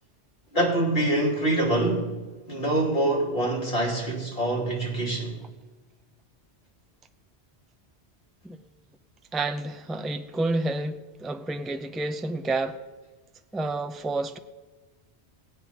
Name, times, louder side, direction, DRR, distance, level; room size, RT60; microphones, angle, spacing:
voice 1, 0.5-2.2 2.5-5.4, right 1 dB, 55° left, 3.2 m, -25 dB
voice 2, 9.3-12.8 13.5-14.4, right 2 dB, ahead, 0.3 m, -29 dB
18.0 x 8.8 x 5.7 m
omnidirectional pair, 1.1 m